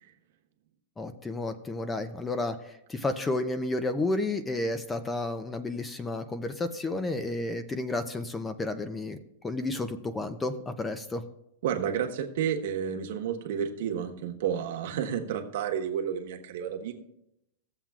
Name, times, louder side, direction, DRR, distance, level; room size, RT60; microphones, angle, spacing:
voice 1, 1.0-11.2, left 2 dB, 10° left, 10 dB, 0.5 m, -31 dB
voice 2, 11.6-17.0, right 8 dB, 65° right, 3 dB, 1.2 m, -31 dB
17.0 x 7.3 x 2.4 m, 0.81 s
supercardioid pair, 155°, 0 cm